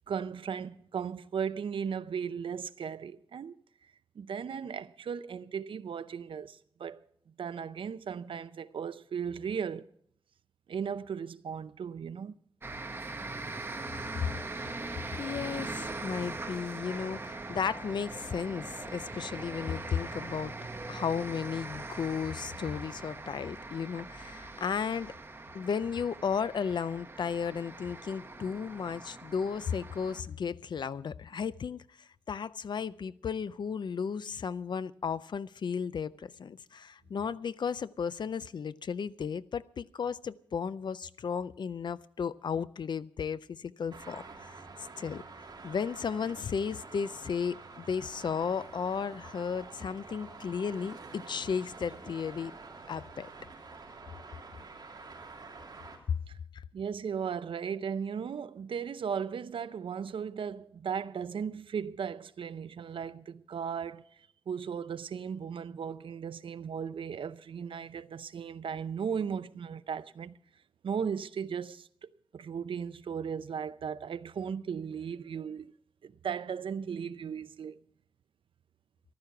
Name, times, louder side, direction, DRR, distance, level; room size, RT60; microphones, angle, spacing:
voice 1, 0.1-3.6 4.2-9.9 10.7-12.3 56.3-56.4 56.7-64.0 64.5-70.4 70.8-75.7 76.0-77.8, right 7 dB, 85° right, 0.5 m, -36 dB
sound 1, 12.6-30.2, right 3 dB, 25° right, 1.1 m, -41 dB
voice 2, 15.2-20.5 20.9-25.1 25.5-31.8 32.3-44.5 45.0-45.2 45.6-52.6 52.9-53.3 56.5-56.6, left 6 dB, 60° left, 0.5 m, -34 dB
Traffic noise roadway noise, 43.9-56.0, right 4 dB, 50° right, 3.0 m, -48 dB
14.5 x 12.5 x 5.8 m
wide cardioid pair, 170°, 9 cm